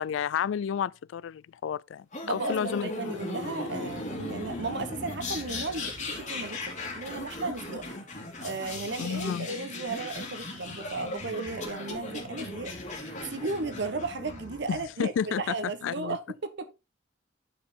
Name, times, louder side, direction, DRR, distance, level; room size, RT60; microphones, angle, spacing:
voice 1, 0.0-2.9 9.0-9.5 14.7-16.2, left 8 dB, 80° left, 0.3 m, -31 dB
sound 1, 2.1-14.8, left 2 dB, 40° left, 2.4 m, -38 dB
voice 2, 2.2-8.0 8.4-16.7, right 3 dB, 65° right, 1.0 m, -35 dB
9.9 x 4.8 x 3.7 m
head